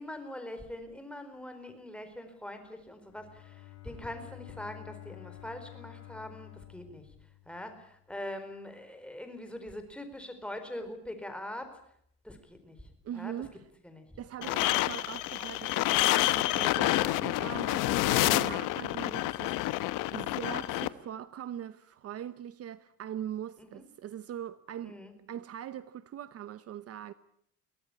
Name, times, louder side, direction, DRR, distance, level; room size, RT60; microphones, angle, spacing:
voice 1, 0.0-7.1 7.4-11.8 12.2-13.5 13.8-14.6 23.6-23.8 24.8-25.1, left 1 dB, 5° left, 4.5 m, -43 dB
Bowed string instrument, 3.0-8.0, left 15 dB, 55° left, 5.2 m, -50 dB
voice 2, 13.0-13.5 14.2-19.8 20.1-25.0 25.3-27.1, right 10 dB, 50° right, 0.9 m, -41 dB
sound 1, 14.4-20.9, left 17 dB, 90° left, 1.0 m, -28 dB
23.0 x 17.5 x 9.7 m
cardioid pair, 125°, 31 cm